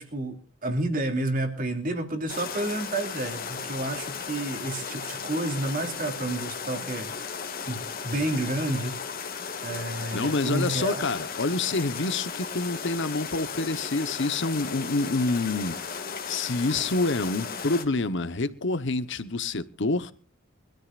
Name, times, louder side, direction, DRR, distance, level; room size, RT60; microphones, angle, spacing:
voice 1, 0.0-7.1 7.7-11.0, right 1 dB, 45° right, 2.8 m, -30 dB
sound 1, 2.3-17.8, left 6 dB, 45° left, 2.2 m, -35 dB
voice 2, 10.1-20.1, left 3 dB, 65° left, 1.1 m, -27 dB
24.5 x 13.5 x 2.5 m
head